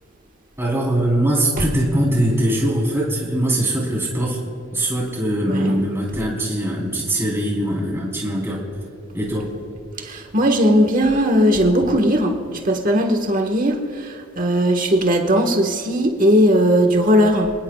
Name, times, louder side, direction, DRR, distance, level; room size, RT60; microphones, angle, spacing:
voice 1, 0.6-4.4 4.7-8.6 9.1-9.5, right 1 dB, 10° right, -3 dB, 3.9 m, -21 dB
voice 2, 10.0-17.5, equal, 40° right, 3 dB, 1.5 m, -18 dB
27.5 x 19.0 x 2.4 m, 2.4 s
head